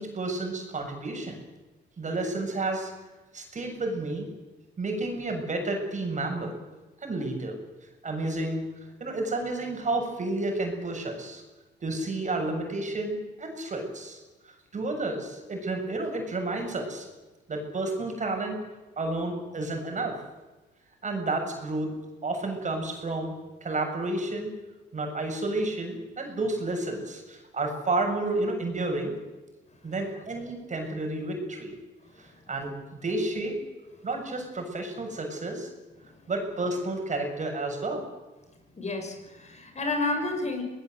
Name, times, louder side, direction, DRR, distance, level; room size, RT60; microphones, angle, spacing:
voice 1, 0.0-1.4 2.0-2.9 3.3-4.3 4.8-6.5 7.0-7.6 8.0-8.7 9.0-11.4 11.8-14.2 14.7-17.1 17.5-18.6 19.0-20.2 21.0-21.9 22.2-23.3 23.6-24.5 24.9-29.2 29.8-31.7 32.2-32.7 33.0-33.5 34.0-35.7 36.3-38.1, right 2 dB, 40° right, 3 dB, 6.8 m, -31 dB
voice 2, 38.7-40.6, left 2 dB, 35° left, 4 dB, 6.0 m, -30 dB
24.5 x 19.0 x 7.8 m, 1.1 s
cardioid pair, 90°, 20 cm